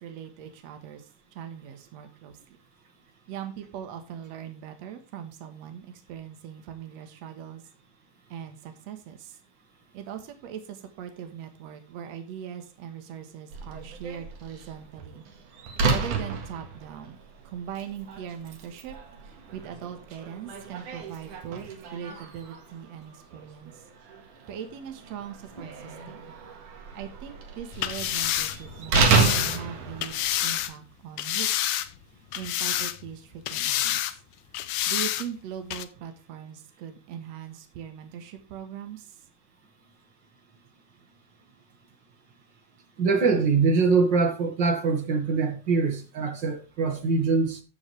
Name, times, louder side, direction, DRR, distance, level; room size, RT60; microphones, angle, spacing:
voice 1, 0.0-2.4 3.3-7.6 8.3-9.4 9.9-15.2 15.9-17.2 17.4-19.0 19.2-23.8 24.4-26.3 26.9-31.5 32.3-34.2 34.9-39.2, right 9 dB, 65° right, 2.4 m, -40 dB
Slam, 13.5-30.7, right 4 dB, 90° right, 3.3 m, -31 dB
sound 1, 27.7-30.7 31.2-32.0 32.3-33.2 33.5-34.1 34.5-35.3 35.7-35.8, left 13 dB, 70° left, 1.8 m, -28 dB
voice 2, 43.0-47.6, right 4 dB, 45° right, 2.1 m, -23 dB
13.0 x 7.2 x 3.3 m
omnidirectional pair, 3.4 m